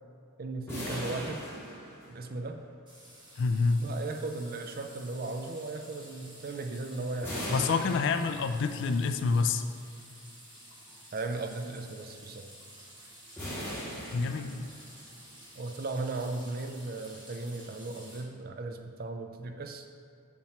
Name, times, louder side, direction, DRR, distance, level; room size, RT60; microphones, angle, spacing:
voice 1, 0.4-1.4 2.1-2.6 3.8-7.8 11.1-12.5 15.5-19.9, right 3 dB, 40° right, 5 dB, 0.4 m, -37 dB
sound 1, 0.7-2.6 7.2-8.9 13.4-15.0, equal, 10° left, 1.6 m, -39 dB
sound 2, 2.9-18.2, right 1 dB, 20° right, 1.3 m, -52 dB
voice 2, 3.4-3.8 7.5-9.6 14.1-14.7, left 4 dB, 55° left, 9 dB, 0.3 m, -27 dB
7.2 x 3.0 x 5.7 m, 2.3 s
head